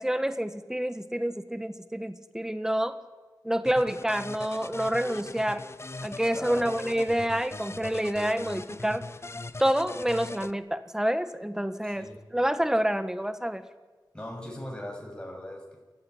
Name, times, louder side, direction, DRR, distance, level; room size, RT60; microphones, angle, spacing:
voice 1, 0.0-3.0 3.4-5.6 6.0-9.0 9.6-13.6, equal, 5° right, 10 dB, 1.6 m, -28 dB
sound 1, 3.7-10.5, left 2 dB, 35° left, 0.9 m, -40 dB
voice 2, 6.3-6.7 11.8-12.2 14.1-15.8, left 1 dB, 10° left, 1 dB, 7.6 m, -39 dB
28.0 x 15.0 x 9.9 m, 1.3 s
wide cardioid pair, 70°, 8 cm